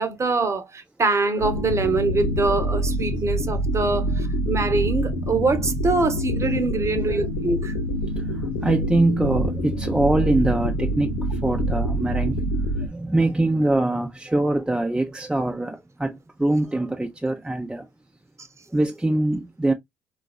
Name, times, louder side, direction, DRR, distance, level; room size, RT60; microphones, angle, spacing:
voice 1, 0.0-7.7, right 3 dB, 30° right, 0.9 m, -24 dB
sound 1, 1.4-12.9, equal, 80° left, 0.9 m, -26 dB
voice 2, 6.9-7.2 8.2-17.9 18.7-19.7, right 2 dB, 10° right, 0.7 m, -24 dB
3.8 x 2.5 x 2.3 m
hypercardioid pair, 55°, 9 cm